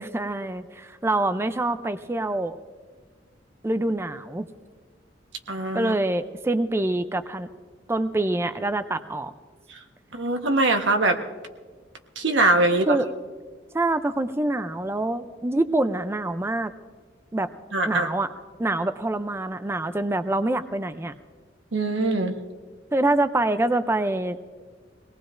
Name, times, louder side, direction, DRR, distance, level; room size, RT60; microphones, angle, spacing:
voice 1, 0.0-2.6 3.6-4.5 5.7-7.5 7.9-9.3 12.9-13.1 13.7-16.7 17.3-17.5 17.8-18.3 18.6-21.1 22.9-24.4, right 2 dB, 15° right, 10 dB, 0.4 m, -25 dB
voice 2, 5.5-5.9 9.7-9.8 10.1-11.2 12.2-13.0 17.7-18.1 21.7-22.3, right 2 dB, 90° right, 4 dB, 1.2 m, -22 dB
24.0 x 18.5 x 2.5 m, 1.5 s
head